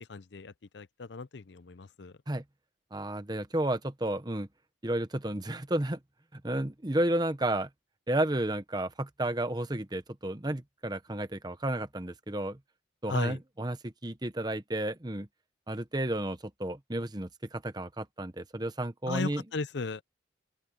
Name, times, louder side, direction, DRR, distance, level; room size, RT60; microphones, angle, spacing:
voice 1, 0.1-2.1 13.1-13.4 19.1-20.0, left 3 dB, 65° left, 0.6 m, -36 dB
voice 2, 2.9-4.5 4.8-6.0 6.3-7.7 8.1-12.6 13.0-15.3 15.7-19.4, right 1 dB, 20° right, 1.0 m, -32 dB
open air
head